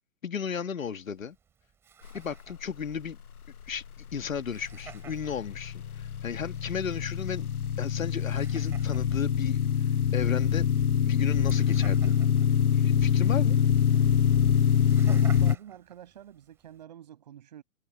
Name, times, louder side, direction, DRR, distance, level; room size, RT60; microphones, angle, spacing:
voice 1, 0.2-1.4 2.1-3.2 3.7-3.8 4.1-7.5 7.8-9.6 10.1-10.7 11.0-12.1 12.7-13.6, left 7 dB, 65° left, 1.7 m, -34 dB
Laughter, 0.8-16.8, right 7 dB, 5° right, 4.2 m, -54 dB
sound 1, 4.7-15.6, left 8 dB, 85° left, 0.9 m, -25 dB
voice 2, 15.1-17.6, right 11 dB, 30° right, 7.1 m, -47 dB
hypercardioid pair, 175°, 43 cm